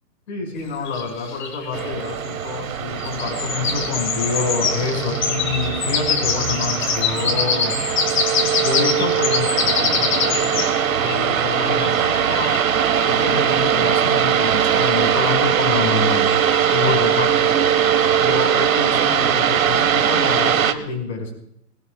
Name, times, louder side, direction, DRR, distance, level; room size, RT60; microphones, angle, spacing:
voice 1, 0.3-7.7 8.6-10.7 11.0-12.7 13.0-16.3 16.7-17.5 18.2-21.3, left 5 dB, 45° left, 2 dB, 5.3 m, -27 dB
sound 1, 0.6-1.9 3.0-13.8 15.8-16.9, left 6 dB, 30° left, 1.6 m, -25 dB
sound 2, 1.7-20.7, right 8 dB, 55° right, 1.2 m, -20 dB
22.5 x 20.5 x 2.4 m, 0.74 s
hypercardioid pair, 170°, 49 cm